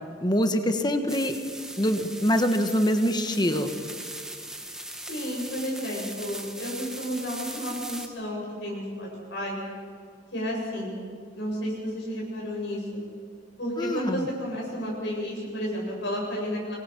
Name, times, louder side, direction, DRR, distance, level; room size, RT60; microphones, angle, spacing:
voice 1, 0.2-1.3 1.8-3.7 13.8-14.2, equal, 25° left, 7 dB, 1.5 m, -24 dB
sound 1, 1.1-8.1, right 1 dB, 5° right, 1.8 m, -39 dB
voice 2, 5.1-9.6 10.3-10.9 11.3-13.0 13.6-16.7, equal, 75° left, -3 dB, 8.0 m, -32 dB
26.5 x 21.0 x 6.1 m, 2.2 s
head